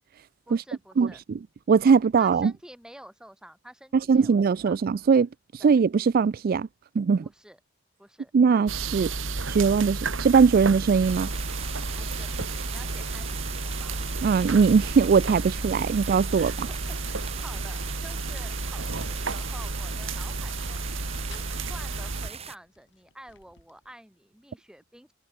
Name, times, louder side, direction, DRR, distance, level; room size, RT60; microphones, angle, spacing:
voice 1, 0.5-1.2 2.2-4.8 5.6-5.8 7.2-7.6 8.0-8.3 11.9-14.0 16.3-16.7 17.0-25.1, equal, 5° right, 6.4 m, -49 dB
voice 2, 1.0-1.4 1.7-2.5 4.1-5.3 5.6-6.7 7.0-7.2 8.3-9.1 9.5-11.3 14.2-16.7, right 5 dB, 50° right, 0.3 m, -21 dB
sound 1, 8.7-22.3, right 3 dB, 80° right, 2.0 m, -32 dB
sound 2, 10.0-23.9, left 5 dB, 65° left, 7.7 m, -61 dB
sound 3, 11.0-22.6, right 6 dB, 30° right, 4.0 m, -41 dB
head